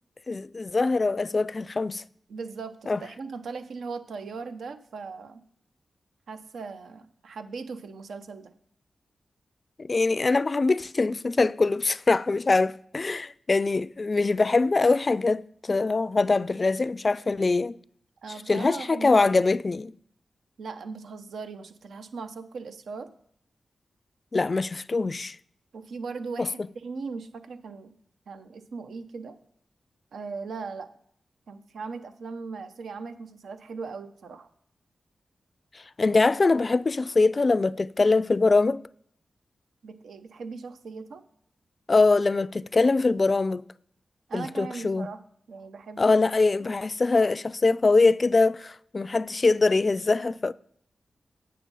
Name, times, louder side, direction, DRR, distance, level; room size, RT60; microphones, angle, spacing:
voice 1, 0.3-2.0 2.9-3.0 9.8-17.8 18.5-19.9 24.3-25.4 36.0-38.8 41.9-43.6 44.3-45.1 46.0-50.5, left 3 dB, 50° left, 0.3 m, -23 dB
voice 2, 2.3-5.4 6.3-8.5 18.2-19.5 20.6-23.1 25.7-27.9 28.3-29.4 30.1-30.9 31.5-34.5 39.8-41.2 44.3-45.2 45.5-46.1, right 4 dB, 85° right, 0.7 m, -38 dB
8.6 x 6.3 x 5.4 m
cardioid pair, 40°, 0 cm